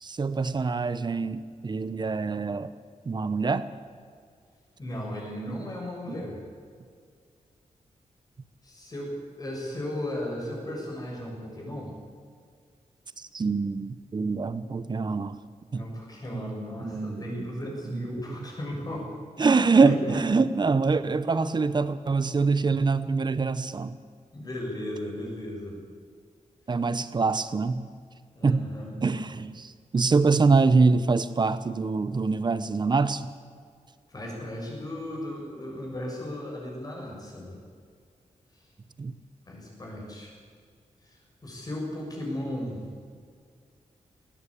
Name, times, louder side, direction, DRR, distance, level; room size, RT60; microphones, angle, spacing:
voice 1, 0.0-2.7 3.1-3.7 6.1-6.2 13.3-15.3 15.7-15.9 16.3-16.5 16.9-17.5 17.9-18.1 19.4-24.0 26.7-27.9 28.4-28.7 29.0-33.2 39.0-39.1, right 4 dB, 35° right, 14 dB, 1.0 m, -24 dB
voice 2, 4.8-6.4 8.6-11.9 15.7-19.1 19.8-20.2 24.3-25.8 28.3-29.0 34.1-37.6 39.5-40.3 41.1-41.2 41.4-42.8, left 1 dB, 30° left, -1 dB, 6.7 m, -36 dB
19.0 x 17.0 x 8.6 m, 2.1 s
wide cardioid pair, 145°, 13 cm